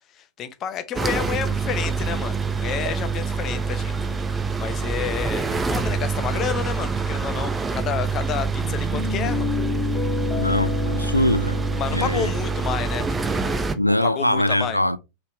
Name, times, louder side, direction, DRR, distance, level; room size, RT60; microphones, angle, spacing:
voice 1, 0.1-9.5 11.8-14.8, left 8 dB, 30° left, 0.7 m, -30 dB
sound 1, 1.0-13.8, right 4 dB, 15° right, 0.6 m, -26 dB
sound 2, 2.9-6.5 7.1-7.2 7.4-7.5, right 6 dB, 60° right, 0.9 m, -46 dB
Guitar, 8.6-13.6, left 7 dB, 10° left, 2.6 m, -31 dB
voice 2, 10.4-11.6 11.9-12.3 13.8-15.0, left 1 dB, 90° left, 0.4 m, -22 dB
5.4 x 3.3 x 2.7 m
figure-of-eight pair, 90°, 0 cm